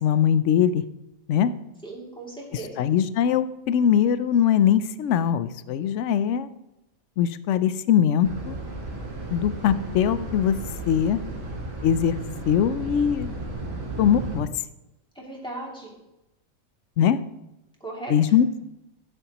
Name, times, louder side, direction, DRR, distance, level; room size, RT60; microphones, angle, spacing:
voice 1, 0.0-0.8 1.3-1.5 2.8-6.5 7.2-8.5 9.3-10.5 10.9-11.2 11.8-12.1 12.5-13.3 14.0-14.5 17.0-17.2 18.1-18.6, left 9 dB, 65° left, 14 dB, 0.8 m, -21 dB
voice 2, 1.8-2.8 15.1-16.0 17.8-18.3, right 2 dB, 5° left, -4 dB, 2.6 m, -37 dB
sound 1, 8.2-14.4, right 2 dB, 75° right, 2.6 m, -34 dB
12.0 x 10.0 x 3.0 m, 0.92 s
omnidirectional pair, 1.5 m